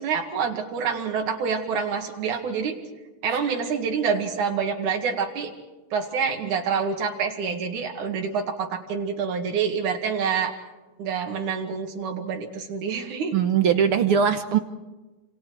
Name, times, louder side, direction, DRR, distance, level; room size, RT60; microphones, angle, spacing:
voice 1, 0.0-2.8 3.2-5.5 5.9-10.5 11.0-13.4, right 6 dB, 85° right, 2 dB, 3.5 m, -27 dB
voice 2, 13.3-14.6, right 7 dB, 65° right, 9 dB, 1.4 m, -21 dB
28.0 x 27.5 x 4.7 m, 1.2 s
omnidirectional pair, 3.4 m